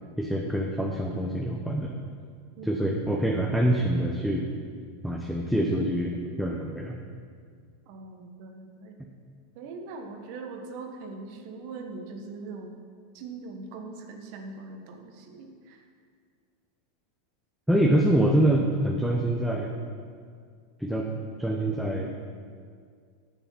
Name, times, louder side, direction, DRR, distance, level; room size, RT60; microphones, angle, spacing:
voice 1, 0.2-1.9 2.7-4.4 5.0-7.0 17.7-19.7 20.8-21.1 21.4-22.1, right 1 dB, ahead, 0 dB, 1.0 m, -25 dB
voice 2, 2.6-3.1 7.9-9.0 9.5-12.7 13.1-15.9, right 3 dB, 55° right, 4 dB, 1.4 m, -41 dB
8.7 x 6.9 x 7.5 m, 2.1 s
hypercardioid pair, 95°, 0 cm